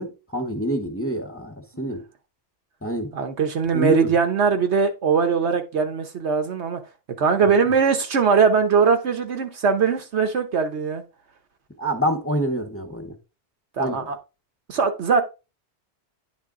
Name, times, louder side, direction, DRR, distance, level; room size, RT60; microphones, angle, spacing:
voice 1, 0.0-2.0 2.8-3.1 3.7-4.1 11.8-13.1 13.8-14.0, equal, 15° left, 0.9 m, -26 dB
voice 2, 3.1-6.8 7.2-11.0 13.8-14.2 14.7-15.2, right 6 dB, 70° right, 1.3 m, -21 dB
9.7 x 3.5 x 3.7 m
omnidirectional pair, 1.2 m